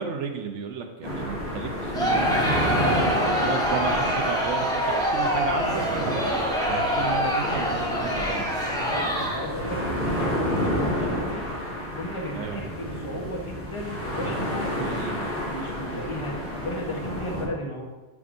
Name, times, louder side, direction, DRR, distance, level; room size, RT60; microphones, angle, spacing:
voice 1, 0.0-6.3 6.7-8.5 12.3-12.6 14.6-15.3, right 6 dB, 80° right, 4 dB, 1.0 m, -33 dB
sound 1, 1.0-17.4, equal, 55° left, 2.3 m, -30 dB
Crowd, 1.9-9.6, equal, 5° left, 0.8 m, -25 dB
voice 2, 2.8-3.5 8.5-11.5 11.9-15.2 15.5-17.9, left 1 dB, 25° left, -1 dB, 1.1 m, -35 dB
9.5 x 4.9 x 2.6 m, 1.2 s
omnidirectional pair, 1.2 m